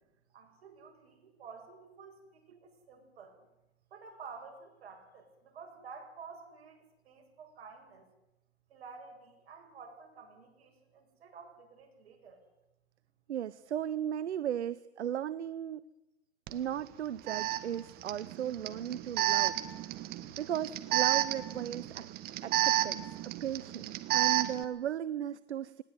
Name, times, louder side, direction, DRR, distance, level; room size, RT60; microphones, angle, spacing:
voice 1, 0.3-3.4 3.9-8.1 8.7-12.4, right 5 dB, 65° right, 3 dB, 7.3 m, -51 dB
voice 2, 13.3-15.8 16.5-19.6 20.4-22.1 22.4-25.8, right 10 dB, 85° right, 18 dB, 0.8 m, -36 dB
Alarm, 16.5-16.6 17.3-24.6, right 14 dB, 30° right, 1.3 m, -31 dB
20.0 x 18.5 x 9.6 m, 0.93 s
hypercardioid pair, 135°, 33 cm